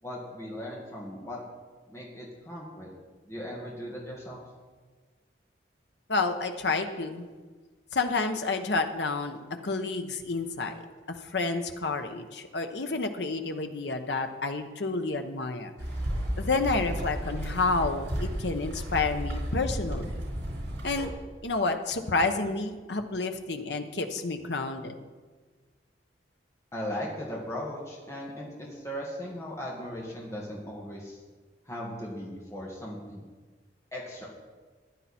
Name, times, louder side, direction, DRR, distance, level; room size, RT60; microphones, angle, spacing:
voice 1, 0.0-1.4 1.9-2.9 3.2-4.4 26.7-31.2 31.6-33.3 33.9-34.3, equal, 15° left, -3 dB, 2.0 m, -38 dB
voice 2, 6.1-7.3 7.9-10.8 11.1-15.7 16.4-20.2 20.8-21.1 21.4-25.0, left 3 dB, 70° left, 7 dB, 1.0 m, -30 dB
sound 1, 15.8-21.1, equal, 80° right, 4.9 m, -33 dB
14.5 x 10.5 x 4.3 m, 1.4 s
head